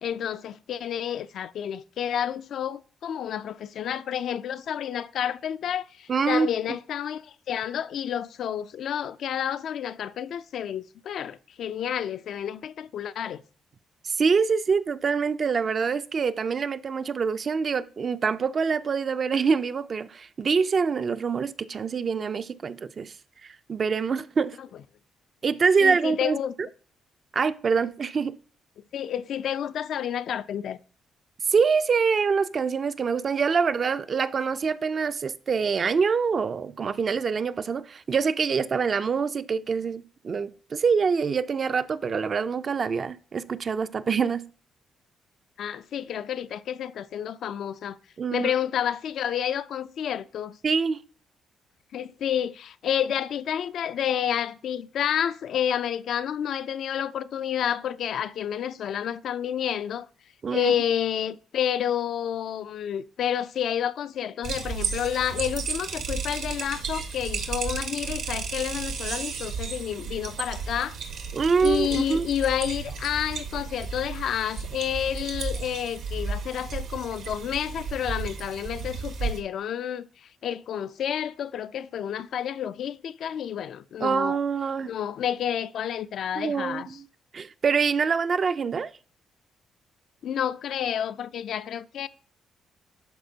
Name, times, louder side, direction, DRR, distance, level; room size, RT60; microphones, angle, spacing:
voice 1, 0.0-13.4 24.6-24.7 25.8-26.5 28.9-30.8 45.6-48.0 48.3-50.6 51.9-60.1 60.5-71.0 71.6-80.1 80.4-84.4 84.8-86.9 90.2-92.1, left 9 dB, 70° left, 0.3 m, -30 dB
voice 2, 6.1-6.5 14.0-23.1 23.4-24.6 25.4-26.7 27.3-28.4 31.5-44.4 48.2-48.5 50.6-51.0 60.4-60.7 71.3-72.3 84.0-84.9 86.4-87.1 87.3-88.9, right 5 dB, 45° right, 0.4 m, -25 dB
sound 1, 64.4-79.4, right 5 dB, 80° right, 1.2 m, -33 dB
11.5 x 4.2 x 2.7 m
cardioid pair, 90°, 0 cm